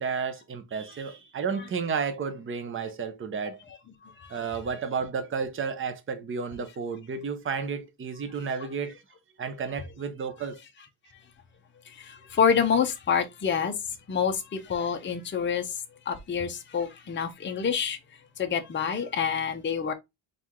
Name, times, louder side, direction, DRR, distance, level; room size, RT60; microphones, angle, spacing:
voice 1, 0.0-3.6 4.3-9.0 9.4-10.6, right 5 dB, 25° right, 0.7 m, -32 dB
voice 2, 12.1-13.7 14.1-15.6 16.1-18.0 18.4-19.9, left 7 dB, 25° left, 0.7 m, -27 dB
4.5 x 2.5 x 3.6 m
cardioid pair, 140°, 47 cm